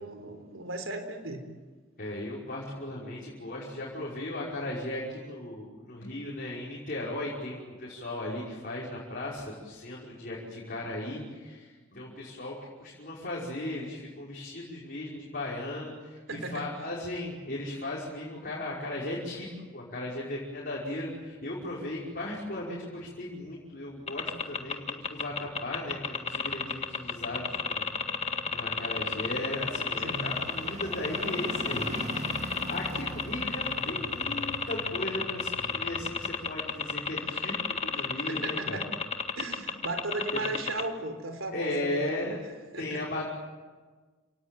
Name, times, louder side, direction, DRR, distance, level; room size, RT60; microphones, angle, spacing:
voice 1, 0.0-1.4 16.3-16.7 30.0-30.3 38.3-38.9 39.4-42.1 42.7-43.0, right 2 dB, 75° right, 7 dB, 3.7 m, -36 dB
voice 2, 2.0-27.9 28.5-38.8 40.3-40.4 41.5-42.4 42.8-43.3, left 1 dB, 45° left, -5 dB, 5.7 m, -36 dB
sound 1, 21.3-37.9 38.3-38.4, right 1 dB, 35° right, 2.3 m, -45 dB
sound 2, 24.1-40.8, left 5 dB, 30° left, 1.8 m, -31 dB
29.5 x 18.5 x 9.4 m, 1.4 s
head